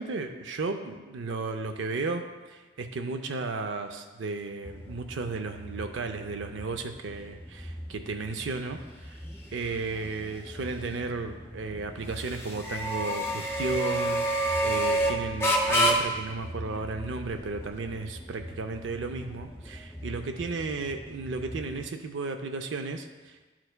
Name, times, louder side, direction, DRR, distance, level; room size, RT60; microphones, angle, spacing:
voice 1, 0.0-9.2 9.5-23.5, right 3 dB, 90° right, 5 dB, 0.5 m, -34 dB
sound 1, 4.6-21.8, right 1 dB, 15° left, 0.6 m, -31 dB
11.5 x 4.4 x 2.2 m, 1.2 s
head